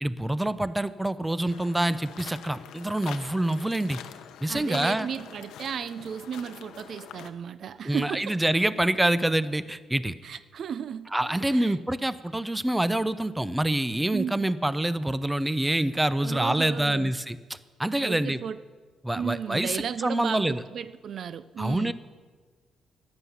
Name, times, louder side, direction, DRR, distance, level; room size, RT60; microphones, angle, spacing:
voice 1, 0.0-4.0 4.4-5.1 7.8-10.1 11.1-18.4 19.0-20.6 21.6-21.9, right 1 dB, 10° right, 0.5 m, -26 dB
sound 1, 1.5-7.3, left 9 dB, 85° left, 0.7 m, -44 dB
voice 2, 4.5-8.5 10.2-11.7 14.1-14.5 16.2-17.1 18.0-18.6 19.1-21.9, right 7 dB, 60° right, 0.4 m, -34 dB
13.0 x 9.7 x 7.2 m
cardioid pair, 90°, 0 cm